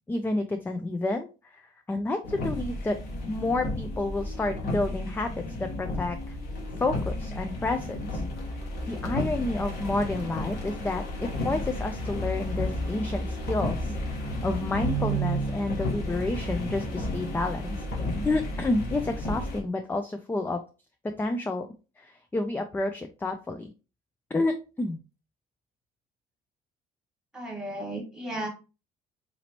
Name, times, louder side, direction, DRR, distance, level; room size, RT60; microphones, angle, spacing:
voice 1, 0.1-1.6 1.9-3.0 3.3-6.4 6.8-8.2 8.9-11.0 11.4-13.9 14.4-17.8 18.2-20.6 21.2-21.7 22.0-23.7 24.3-25.0, left 2 dB, 10° left, 6 dB, 0.4 m, -29 dB
sound 1, 2.2-19.6, left 1 dB, 70° left, 1.3 m, -32 dB
voice 2, 27.3-28.5, right 1 dB, 5° right, 1 dB, 1.5 m, -34 dB
4.0 x 2.9 x 2.9 m, 0.32 s
cardioid pair, 110°, 17 cm